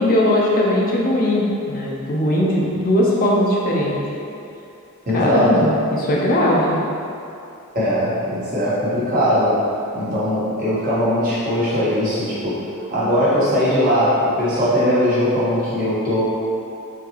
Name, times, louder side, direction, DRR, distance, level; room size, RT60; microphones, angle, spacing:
voice 1, 0.0-4.0 5.1-6.8, left 1 dB, 40° left, -3 dB, 0.4 m, -19 dB
voice 2, 5.0-5.7 7.7-9.6 9.9-12.6 12.9-16.2, equal, 40° right, -10 dB, 1.1 m, -20 dB
3.8 x 2.8 x 2.9 m, 2.7 s
head